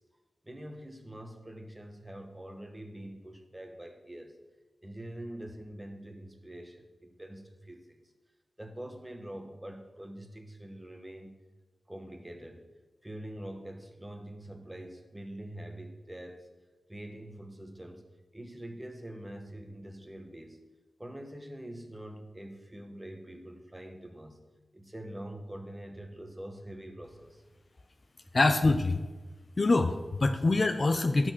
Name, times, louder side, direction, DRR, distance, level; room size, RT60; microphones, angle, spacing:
voice 1, 0.4-4.4 4.8-8.0 8.6-11.4 11.9-12.6 13.0-16.5 16.9-18.0 18.3-20.6 21.0-24.4 24.7-27.4, right 1 dB, 15° right, 5 dB, 1.2 m, -44 dB
voice 2, 28.3-29.0 29.6-31.3, left 2 dB, 45° left, 7 dB, 0.7 m, -25 dB
11.5 x 6.3 x 6.1 m, 1.2 s
wide cardioid pair, 90°, 0 cm